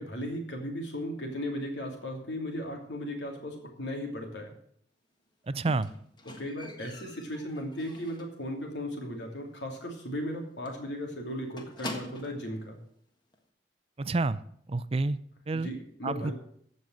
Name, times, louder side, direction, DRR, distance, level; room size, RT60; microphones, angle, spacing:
voice 1, 0.0-4.5 6.4-12.8 15.5-16.3, equal, 80° left, 2 dB, 2.8 m, -36 dB
voice 2, 5.5-5.9 14.0-14.4 14.7-15.2 15.5-15.7 16.0-16.3, right 3 dB, 35° right, 15 dB, 0.5 m, -29 dB
Squeak, 5.7-8.4 8.8-9.2 9.4-9.5 9.9-10.0 10.3-10.4 10.7-12.5 13.3-13.4, left 1 dB, 25° left, 1.6 m, -44 dB
15.0 x 5.4 x 7.6 m, 0.66 s
head